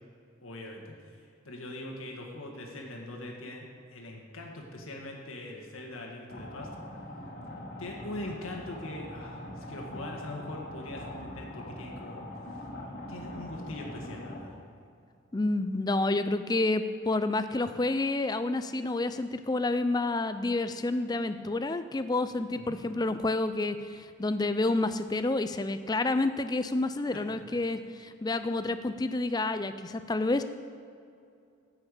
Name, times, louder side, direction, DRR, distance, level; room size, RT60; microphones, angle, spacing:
voice 1, 0.4-6.7 7.8-12.2 13.1-14.6 22.5-22.8 27.1-27.2, left 1 dB, 85° left, 0 dB, 1.7 m, -42 dB
sound 1, 6.3-14.4, left 1 dB, 50° left, 1.8 m, -42 dB
voice 2, 15.3-30.4, left 2 dB, 20° left, 11 dB, 0.4 m, -29 dB
11.0 x 5.8 x 8.3 m, 2.4 s
head